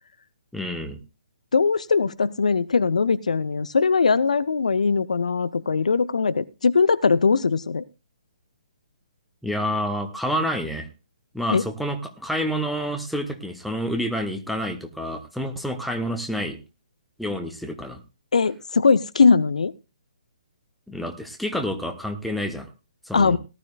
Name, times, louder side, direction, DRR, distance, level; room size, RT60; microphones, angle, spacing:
voice 1, 0.5-1.0 9.4-10.9 11.3-16.6 17.2-18.0 20.9-22.7 23.1-23.4, equal, ahead, 4 dB, 1.2 m, -28 dB
voice 2, 1.5-7.8 11.5-11.6 18.3-19.7 23.1-23.4, left 5 dB, 65° left, 14 dB, 0.6 m, -20 dB
18.0 x 12.0 x 2.4 m, 0.29 s
figure-of-eight pair, 130°, 4 cm